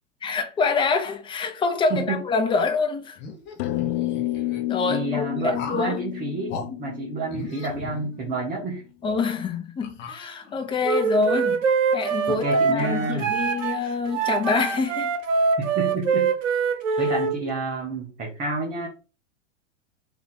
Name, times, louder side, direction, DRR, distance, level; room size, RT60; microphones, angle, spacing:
voice 1, 0.2-3.2 4.7-6.0 8.3-8.4 9.0-11.6 11.9-15.1 17.0-17.1, left 4 dB, 15° left, 0.6 m, -26 dB
voice 2, 1.9-2.2 4.9-8.8 12.3-13.3 15.6-16.3 17.0-18.9, right 3 dB, 20° right, 0.9 m, -29 dB
sound 1, 3.2-4.6 5.5-6.0 6.5-6.7 7.3-8.5 9.0-9.1 9.8-10.7, left 4 dB, 30° left, 1.1 m, -37 dB
sound 2, 3.6-8.3, left 16 dB, 55° left, 0.6 m, -30 dB
Wind instrument woodwind instrument, 10.8-17.3, right 5 dB, 85° right, 1.1 m, -24 dB
3.6 x 2.9 x 4.2 m
hypercardioid pair, 130°, 37 cm